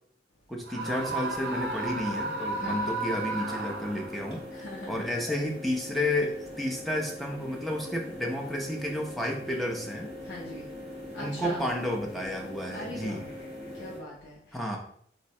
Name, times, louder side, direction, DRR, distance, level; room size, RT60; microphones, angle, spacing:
voice 1, 0.5-4.4 4.9-10.1 11.2-13.3 14.5-14.8, left 1 dB, ahead, 0 dB, 0.4 m, -31 dB
Screaming, 0.7-4.3, right 2 dB, 80° right, 0.5 m, -33 dB
sound 1, 0.8-14.0, left 1 dB, 60° left, 1.0 m, -42 dB
voice 2, 2.6-3.0 4.5-5.1 10.2-10.7 11.1-11.6 12.7-13.3 13.8-14.6, left 1 dB, 85° left, -3 dB, 0.6 m, -41 dB
3.9 x 2.1 x 2.7 m, 0.63 s
head